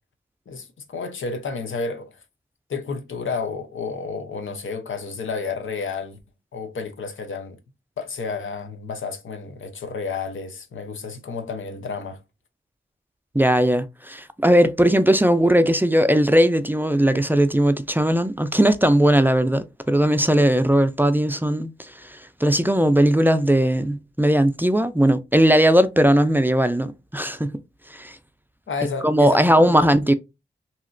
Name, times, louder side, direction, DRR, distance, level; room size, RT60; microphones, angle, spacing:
voice 1, 0.5-2.1 2.7-6.2 6.5-7.6 8.0-12.2 28.7-29.9, left 4 dB, 85° left, 0.6 m, -31 dB
voice 2, 13.3-27.6 27.9-28.2 29.0-30.1, right 1 dB, 10° right, 0.3 m, -18 dB
2.9 x 2.8 x 2.5 m
cardioid pair, 55°, 20 cm